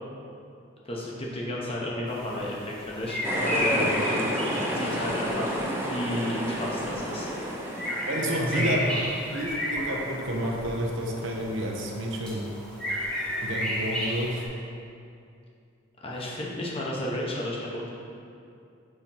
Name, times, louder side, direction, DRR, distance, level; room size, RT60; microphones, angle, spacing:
voice 1, 0.8-7.3 8.4-9.0 16.0-17.9, left 1 dB, 30° left, -4 dB, 0.9 m, -32 dB
sound 1, 2.1-14.5, equal, 5° left, 1.0 m, -33 dB
sound 2, 3.2-9.0, equal, 10° right, 0.6 m, -31 dB
voice 2, 3.6-4.0 8.1-8.9 9.3-12.4 13.4-14.4, equal, 70° right, 0 dB, 0.8 m, -30 dB
4.9 x 4.2 x 5.7 m, 2.5 s
head